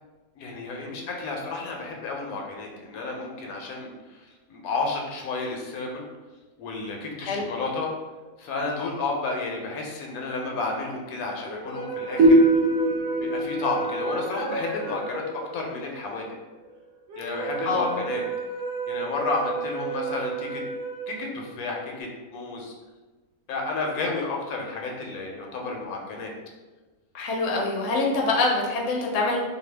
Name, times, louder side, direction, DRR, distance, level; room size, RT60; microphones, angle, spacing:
voice 1, 0.4-6.1 6.6-7.9 8.4-12.4 13.2-15.2 15.5-16.3 17.2-18.2 18.9-20.6 21.1-22.7 23.5-26.3, left 3 dB, 85° left, 0 dB, 1.1 m, -31 dB
sound 1, 11.5-21.9, right 4 dB, 60° right, 0.9 m, -33 dB
sound 2, 12.2-15.6, right 1 dB, 85° right, 1.1 m, -22 dB
voice 2, 17.6-18.0 27.1-29.4, left 3 dB, 65° left, -2 dB, 0.8 m, -25 dB
2.7 x 2.2 x 3.2 m, 1.2 s
omnidirectional pair, 1.5 m